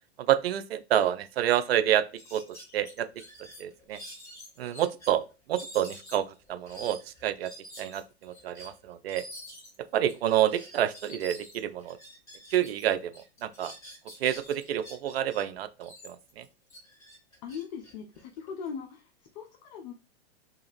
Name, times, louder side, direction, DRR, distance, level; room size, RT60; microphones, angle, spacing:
voice 1, 0.2-2.0 2.3-3.1 3.6-4.0 4.6-5.2 5.5-7.5 7.8-9.2 9.9-12.0 12.5-13.7 14.2-16.4, right 11 dB, 65° right, 0.5 m, -28 dB
sound 1, 1.2-1.3 1.6-1.8 2.1-5.1 5.5-12.8 13.1-15.4 15.8-18.7, equal, 10° left, 1.8 m, -48 dB
voice 2, 17.4-19.9, left 6 dB, 40° left, 0.5 m, -40 dB
2.8 x 2.4 x 3.0 m
hypercardioid pair, 110°, 32 cm